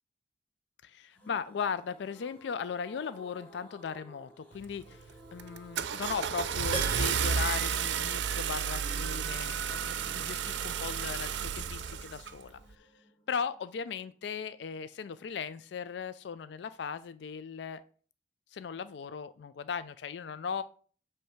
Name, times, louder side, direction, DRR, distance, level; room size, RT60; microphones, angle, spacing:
voice 1, 0.8-12.9 13.3-17.8 18.5-20.6, left 6 dB, 80° left, 14 dB, 0.4 m, -38 dB
sound 1, 1.1-14.7 15.0-15.1 15.3-15.4, equal, 5° left, 1.5 m, -54 dB
Car / Engine starting, 4.6-4.9 5.4-12.4, right 7 dB, 85° right, 0.5 m, -32 dB
Piano, 6.7-8.8 9.1-9.2, right 2 dB, 25° right, 1.1 m, -42 dB
8.4 x 3.4 x 5.7 m, 0.44 s
head